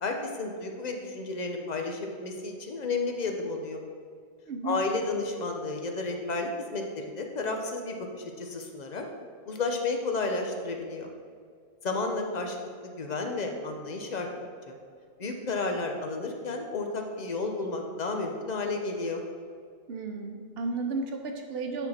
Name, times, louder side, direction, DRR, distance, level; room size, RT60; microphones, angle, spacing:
voice 1, 0.0-3.8 4.6-9.0 9.5-11.1 11.8-14.3 14.7-14.8 15.2-19.2, left 3 dB, 45° left, 3 dB, 0.9 m, -32 dB
voice 2, 4.5-4.8 19.9-21.9, right 3 dB, 75° right, 3 dB, 1.1 m, -33 dB
9.1 x 4.4 x 4.2 m, 2.2 s
omnidirectional pair, 1.0 m